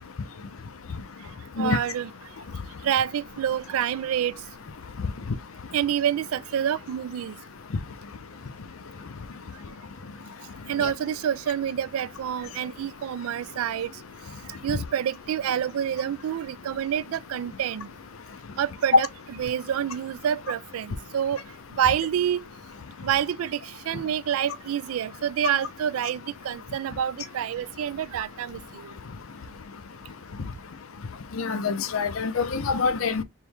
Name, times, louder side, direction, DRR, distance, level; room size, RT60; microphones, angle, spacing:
voice 1, 1.6-2.1 2.8-4.4 5.7-7.4 10.7-13.9 14.6-17.9 18.6-19.1 19.4-21.4 21.8-22.4 23.0-28.9, right 9 dB, 85° right, 0.3 m, -27 dB
voice 2, 31.4-33.2, left 4 dB, 80° left, 0.5 m, -24 dB
4.5 x 2.2 x 3.4 m
head